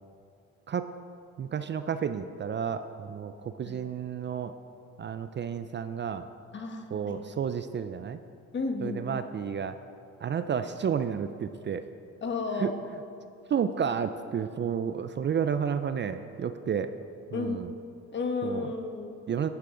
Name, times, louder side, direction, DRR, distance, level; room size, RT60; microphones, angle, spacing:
voice 1, 1.4-4.5 5.0-6.3 6.9-8.2 8.8-9.7 10.2-11.8 12.6-12.7 13.5-16.9 17.3-17.7 18.4-18.7 19.3-19.5, right 7 dB, 40° right, 10 dB, 0.4 m, -31 dB
voice 2, 6.5-7.2 8.5-9.2 12.2-12.8 17.3-17.6 18.1-19.1, left 3 dB, 40° left, 4 dB, 1.3 m, -33 dB
11.5 x 10.5 x 3.8 m, 2.5 s
cardioid pair, 90°, 30 cm